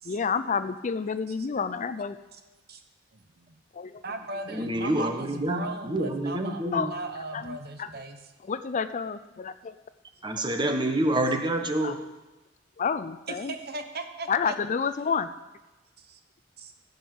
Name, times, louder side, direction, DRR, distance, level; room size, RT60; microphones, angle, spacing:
voice 1, 0.0-2.2 3.7-4.0 6.7-6.9 7.3-7.9 8.5-9.7 11.8-12.0 12.8-13.5 14.3-15.3, left 6 dB, 40° left, 12 dB, 0.4 m, -29 dB
voice 2, 3.1-3.6 4.0-8.2 13.4-14.6 16.0-16.2 16.6-16.7, right 2 dB, 55° right, 7 dB, 1.1 m, -38 dB
voice 3, 4.5-6.9 10.2-12.0, right 1 dB, 25° right, 5 dB, 1.2 m, -27 dB
16.0 x 5.5 x 7.8 m, 1.1 s
head